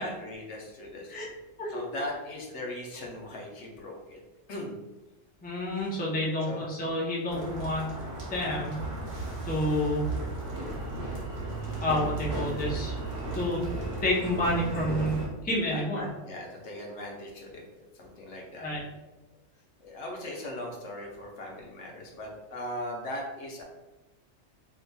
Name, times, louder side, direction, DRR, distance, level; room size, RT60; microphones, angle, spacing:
voice 1, 0.0-1.3 1.7-4.2 4.5-4.7 6.4-6.6 15.7-17.6 17.9-18.7 19.8-23.6, left 1 dB, 75° left, -1 dB, 1.0 m, -39 dB
voice 2, 5.4-7.9 8.3-8.9 9.4-10.1 11.8-12.9 13.3-13.6 14.0-16.1 18.6-18.8, left 1 dB, 10° left, -4 dB, 0.5 m, -29 dB
sound 1, 7.3-15.3, right 2 dB, 55° right, 1.3 m, -35 dB
3.9 x 2.9 x 2.2 m, 1.1 s
omnidirectional pair, 1.2 m